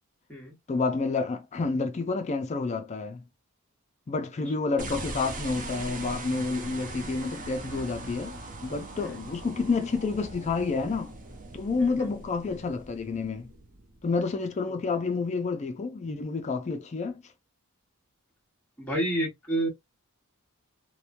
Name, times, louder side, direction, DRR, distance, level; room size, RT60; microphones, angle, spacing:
voice 1, 0.7-3.2 4.1-11.1 11.5-13.5 14.0-17.2, left 4 dB, 30° left, 0.4 m, -29 dB
sound 1, 4.8-14.2, right 2 dB, 40° right, 0.5 m, -41 dB
voice 2, 11.8-12.1 14.7-14.8 18.8-19.7, right 1 dB, 5° left, 1.2 m, -31 dB
3.0 x 2.1 x 2.4 m
head